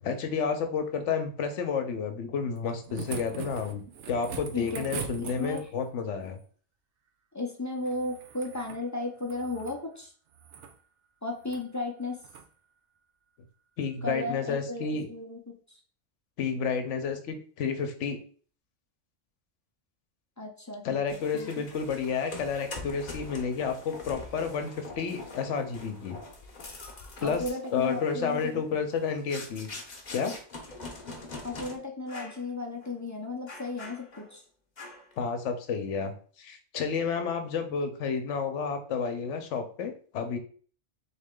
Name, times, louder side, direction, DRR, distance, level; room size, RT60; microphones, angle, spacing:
voice 1, 0.0-3.8 4.1-6.4 13.8-15.1 16.4-18.2 20.8-26.2 27.2-27.4 27.7-29.7 30.1-30.4 35.2-36.1 36.4-40.4, left 6 dB, 75° left, 7 dB, 1.0 m, -30 dB
sound 1, 2.6-5.9 7.8-8.8 9.2-9.8 10.3-10.7 11.4-11.6 12.2-12.5 13.8-13.9, right 7 dB, 75° right, 0.9 m, -42 dB
voice 2, 4.5-5.0 5.4-5.7 7.3-10.1 11.2-12.2 14.0-15.8 20.4-21.5 27.2-28.6 31.4-34.4, left 2 dB, 20° left, 0 dB, 0.5 m, -35 dB
sound 2, 21.1-31.7 32.1-32.4 32.8-32.9 33.5-34.3 34.8-35.2, left 3 dB, 40° left, 0.9 m, -44 dB
4.0 x 3.2 x 3.7 m, 0.44 s
omnidirectional pair, 1.2 m